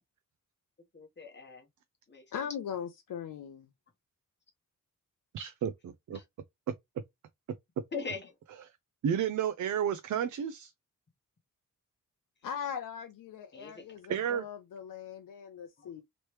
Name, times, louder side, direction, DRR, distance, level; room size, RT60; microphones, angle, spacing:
voice 1, 0.9-1.7 2.1-2.4 6.1-6.2 7.9-8.3 13.5-14.0 15.8-15.9, left 4 dB, 35° left, 0.9 m, -41 dB
voice 2, 2.3-3.7 12.4-16.0, left 8 dB, 75° left, 0.6 m, -40 dB
voice 3, 5.3-6.2 9.0-10.7 14.1-14.4, right 8 dB, 65° right, 0.5 m, -31 dB
3.1 x 3.0 x 3.0 m
wide cardioid pair, 155°, 33 cm